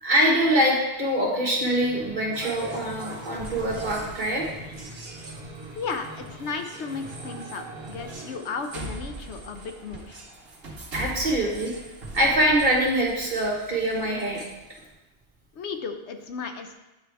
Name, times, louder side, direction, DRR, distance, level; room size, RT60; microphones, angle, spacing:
voice 1, 0.0-4.5 10.9-11.7 12.1-14.4, right 1 dB, 45° right, -2 dB, 1.4 m, -24 dB
sound 1, 1.6-8.4, right 1 dB, 25° right, 1.3 m, -43 dB
sound 2, 2.3-14.9, right 2 dB, 65° right, 1.3 m, -41 dB
voice 2, 5.7-10.2 15.5-16.8, left 5 dB, 90° left, 6 dB, 1.0 m, -34 dB
9.4 x 4.7 x 3.5 m, 1.0 s
omnidirectional pair, 1.1 m